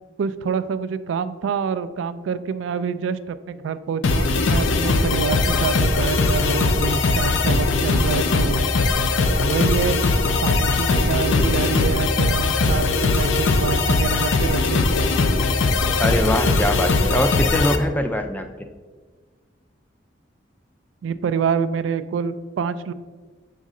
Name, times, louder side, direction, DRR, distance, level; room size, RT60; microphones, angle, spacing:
voice 1, 0.2-8.6 9.4-10.0 10.4-14.9 21.0-22.9, right 6 dB, 80° right, 12 dB, 0.3 m, -26 dB
sound 1, 4.0-17.8, left 3 dB, 80° left, 0.5 m, -20 dB
voice 2, 16.0-18.7, left 1 dB, 10° left, 6 dB, 0.4 m, -23 dB
6.4 x 4.1 x 3.7 m, 1.4 s
head